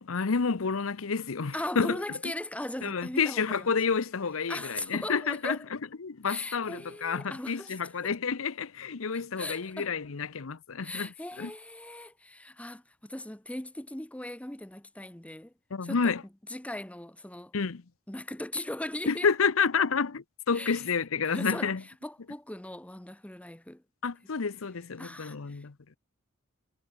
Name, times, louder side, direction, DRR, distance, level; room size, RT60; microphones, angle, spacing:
voice 1, 0.0-2.0 2.8-5.6 6.0-11.1 11.4-11.5 15.7-16.2 17.5-17.8 19.1-21.8 24.0-25.7, left 5 dB, 80° left, 0.8 m, -29 dB
voice 2, 1.5-3.7 4.5-5.6 6.2-7.8 8.0-8.1 9.1-9.9 10.8-15.5 15.8-16.1 16.5-17.5 18.1-19.3 20.5-20.8 21.2-23.8 25.0-25.7, left 1 dB, 5° left, 0.8 m, -39 dB
head